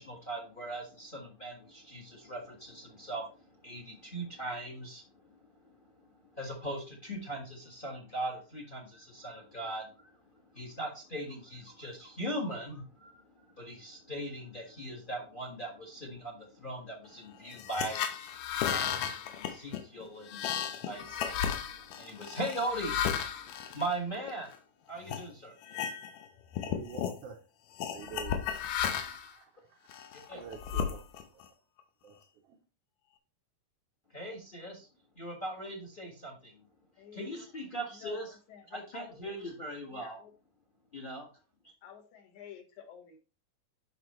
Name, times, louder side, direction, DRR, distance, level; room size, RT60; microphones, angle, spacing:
voice 1, 0.0-18.1 18.5-24.5 24.9-25.6 30.3-30.4 34.1-34.9 35.1-36.6 37.1-38.3 38.7-40.2 40.9-41.3 41.6-41.7, right 1 dB, 35° left, 0.8 m, -40 dB
sound 1, 17.5-24.6 25.1-25.2 25.6-26.3 26.5-27.2 27.8-29.3 29.9-31.4, left 8 dB, 90° left, 2.4 m, -34 dB
voice 2, 26.6-27.4 27.9-28.4 28.9-30.0 30.3-31.0 31.3-31.4 32.0-32.2 32.4-32.6, right 7 dB, 75° right, 1.4 m, -47 dB
voice 3, 38.0-39.3 39.9-40.3 41.8-43.2, left 9 dB, 65° left, 2.6 m, -50 dB
12.0 x 5.0 x 3.1 m
omnidirectional pair, 3.7 m